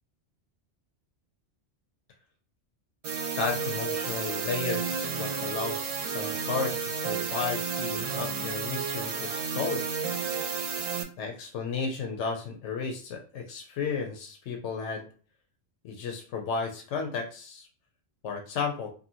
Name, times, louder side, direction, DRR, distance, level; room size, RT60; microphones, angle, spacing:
sound 1, 3.0-11.0, right 6 dB, 70° right, 0.3 m, -31 dB
voice 1, 3.4-9.8 11.2-15.1 15.8-17.7 18.2-18.9, left 5 dB, 85° left, 3 dB, 0.9 m, -33 dB
2.7 x 2.7 x 2.6 m, 0.39 s
omnidirectional pair, 1.2 m